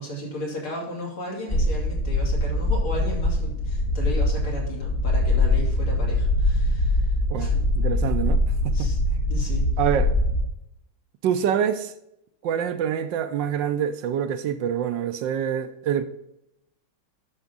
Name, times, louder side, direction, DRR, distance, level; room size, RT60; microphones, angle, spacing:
voice 1, 0.0-7.6 8.7-9.0 9.3-9.7, equal, 90° left, 3.8 m, -35 dB
sound 1, 1.5-10.4, left 1 dB, 40° left, 0.8 m, -23 dB
voice 2, 7.3-8.9 9.8-10.2 11.2-11.9 12.4-16.0, right 9 dB, 70° right, 1.3 m, -26 dB
9.7 x 7.1 x 3.9 m
omnidirectional pair, 2.3 m